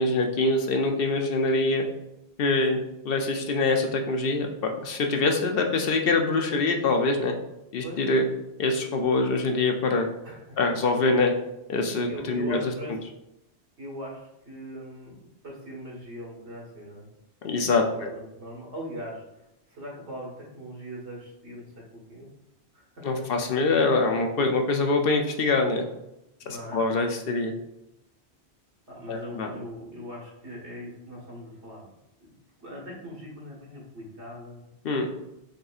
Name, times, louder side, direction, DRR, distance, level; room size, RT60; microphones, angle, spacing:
voice 1, 0.0-1.8 2.4-7.3 7.7-8.2 8.6-10.1 10.6-11.3 11.7-12.6 17.4-18.1 23.0-25.8 26.5-27.5 29.1-29.5 34.8-35.1, left 3 dB, 65° left, 3 dB, 0.7 m, -24 dB
voice 2, 10.2-10.6 12.1-13.0 13.8-17.1 17.9-22.3 22.7-23.2 26.4-26.8 28.9-31.8 32.2-32.3 32.6-34.6, equal, 85° right, -4 dB, 1.7 m, -40 dB
6.4 x 2.6 x 2.4 m, 0.86 s
omnidirectional pair, 1.1 m